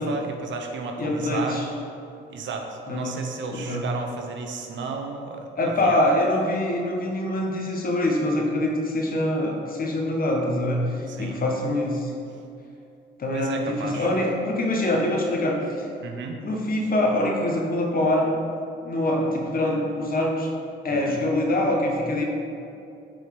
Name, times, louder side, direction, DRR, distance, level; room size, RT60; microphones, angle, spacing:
voice 1, 0.0-1.6 2.3-6.0 11.1-11.4 13.3-14.1 16.0-16.4 20.9-21.2, right 4 dB, 70° right, 3 dB, 1.0 m, -34 dB
voice 2, 1.0-1.7 2.9-3.2 3.5-3.9 5.6-12.1 13.2-15.9 16.4-18.4 18.8-20.5 20.8-22.2, left 1 dB, 45° left, 0 dB, 1.4 m, -24 dB
7.7 x 4.6 x 5.2 m, 2.7 s
cardioid pair, 90°, 20 cm